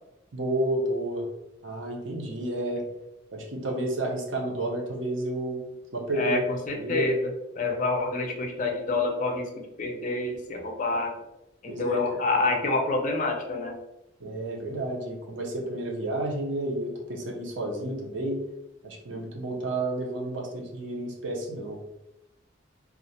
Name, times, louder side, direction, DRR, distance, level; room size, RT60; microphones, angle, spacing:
voice 1, 0.3-1.3 1.6-2.8 3.3-6.4 6.8-7.1 11.7-12.2 12.7-12.8 14.2-18.4 18.8-21.8, right 1 dB, 75° right, -1 dB, 0.6 m, -31 dB
voice 2, 6.1-7.3 7.6-9.5 9.8-11.1 11.6-13.8, left 3 dB, 40° left, 3 dB, 0.4 m, -27 dB
2.3 x 2.1 x 2.6 m, 0.92 s
head